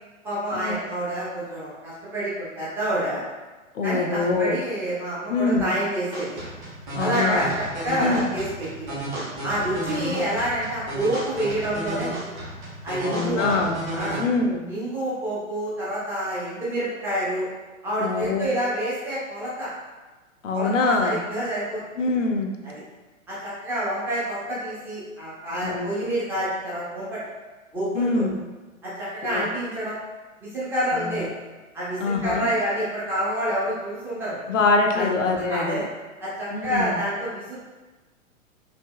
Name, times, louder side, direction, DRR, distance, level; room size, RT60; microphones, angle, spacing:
voice 1, 0.2-3.2 3.8-6.5 7.0-9.0 9.4-12.4 12.8-13.6 13.9-14.2 14.7-17.5 17.8-19.7 20.5-21.8 22.6-22.8 23.3-27.2 27.7-28.2 28.8-30.0 30.4-31.3 31.7-34.4 34.9-35.1 35.5-35.8 36.2-37.6, right 1 dB, 5° right, -10 dB, 0.6 m, -28 dB
voice 2, 3.7-4.6 5.3-5.8 7.0-7.5 8.0-8.2 9.9-10.3 13.0-13.8 14.2-14.7 18.0-18.5 20.4-21.2 22.0-22.6 25.6-25.9 27.9-28.4 29.3-29.4 30.9-31.3 32.0-32.5 34.5-35.8 36.5-37.0, left 3 dB, 65° left, 3 dB, 0.5 m, -24 dB
sound 1, 6.1-14.2, right 1 dB, 25° right, 1.1 m, -33 dB
3.3 x 2.6 x 2.2 m, 1.2 s
figure-of-eight pair, 110°, 41 cm